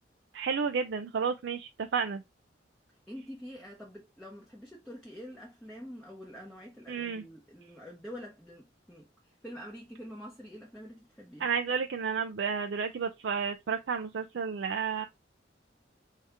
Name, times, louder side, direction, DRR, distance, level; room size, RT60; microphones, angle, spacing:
voice 1, 0.3-2.2 6.9-7.2 11.4-15.1, right 6 dB, 70° right, 0.4 m, -31 dB
voice 2, 3.1-11.5, equal, 5° left, 0.8 m, -46 dB
4.6 x 2.8 x 3.5 m
head